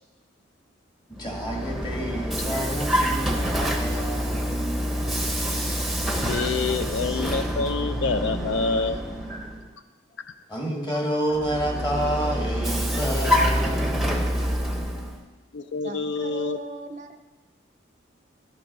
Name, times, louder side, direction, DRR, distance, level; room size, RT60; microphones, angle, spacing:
voice 1, 1.1-4.9 9.3-9.5 10.5-14.4, equal, 20° left, 0 dB, 1.6 m, -29 dB
Vehicle, 1.1-9.7 11.3-15.2, equal, ahead, 0.7 m, -26 dB
voice 2, 6.3-9.0 15.5-16.6, left 4 dB, 60° left, 10 dB, 0.4 m, -27 dB
voice 3, 15.8-17.2, right 2 dB, 40° right, 8 dB, 0.5 m, -37 dB
11.0 x 6.0 x 5.3 m, 1.1 s
head